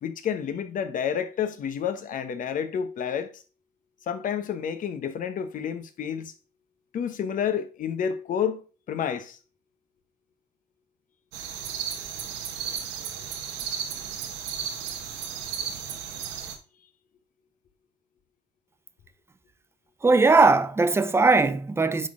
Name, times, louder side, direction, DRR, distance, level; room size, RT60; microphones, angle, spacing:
voice 1, 0.0-3.4 4.1-6.3 6.9-9.4, left 8 dB, 55° left, 1.0 m, -30 dB
sound 1, 11.3-16.6, right 7 dB, 90° right, 1.4 m, -34 dB
voice 2, 20.0-22.1, right 3 dB, 15° right, 0.6 m, -19 dB
10.0 x 4.0 x 3.8 m
cardioid pair, 110°, 17 cm